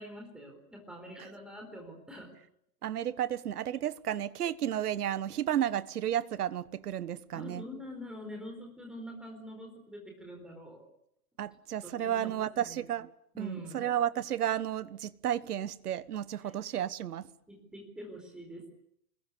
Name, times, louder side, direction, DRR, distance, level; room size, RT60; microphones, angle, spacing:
voice 1, 0.0-2.3 7.3-10.9 11.8-12.9 13.3-13.8 16.4-16.6 17.5-18.7, equal, ahead, 4.3 m, -45 dB
voice 2, 2.8-7.6 11.4-13.1 13.4-17.3, right 11 dB, 75° right, 1.4 m, -32 dB
26.0 x 21.0 x 8.4 m
hypercardioid pair, 165°, 46 cm